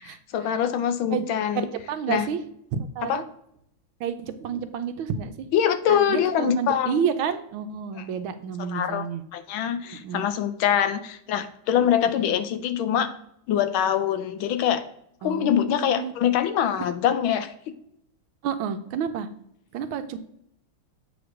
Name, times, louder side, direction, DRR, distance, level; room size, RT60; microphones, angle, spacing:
voice 1, 0.3-1.7 2.1-2.3 3.0-3.2 5.5-7.0 8.0-8.1 8.6-9.0 9.3-13.1 13.5-14.8 15.2-17.5, left 9 dB, 80° left, 11 dB, 1.4 m, -24 dB
voice 2, 1.7-2.4 2.7-3.2 4.0-5.5 5.9-9.2 9.9-10.3 12.0-12.4 15.2-16.1 18.4-19.3 19.7-20.2, right 7 dB, 85° right, 9 dB, 1.5 m, -30 dB
8.0 x 3.1 x 6.3 m, 0.73 s
omnidirectional pair, 2.2 m